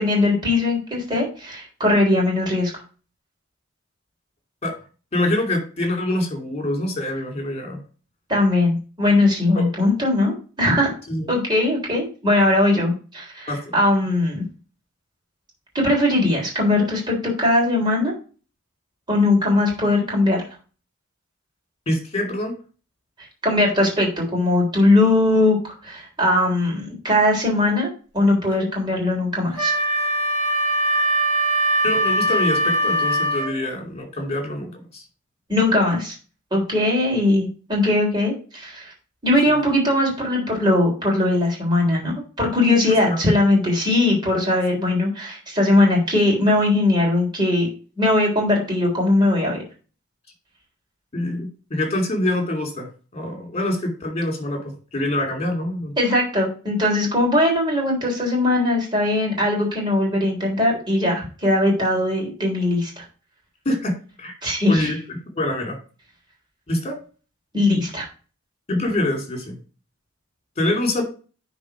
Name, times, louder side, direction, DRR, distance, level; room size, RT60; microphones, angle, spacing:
voice 1, 0.0-2.7 8.3-10.9 11.3-14.4 15.7-18.1 19.1-20.4 23.4-25.6 25.8-29.7 35.5-36.1 36.5-38.9 39.2-42.1 42.4-47.7 48.0-49.6 56.0-63.0 64.4-64.9 67.5-68.0, left 2 dB, 20° right, -3 dB, 3.6 m, -20 dB
voice 2, 5.1-7.8 9.5-9.6 11.1-11.3 13.5-13.8 21.9-22.5 31.8-35.0 42.8-43.2 51.1-52.9 53.1-55.9 63.6-64.3 64.7-65.8 66.7-67.0 68.7-69.5 70.6-71.0, left 1 dB, 30° left, 3 dB, 2.8 m, -25 dB
Wind instrument woodwind instrument, 29.6-33.5, right 1 dB, 10° left, 4.8 m, -21 dB
9.7 x 4.1 x 4.9 m, 0.36 s
head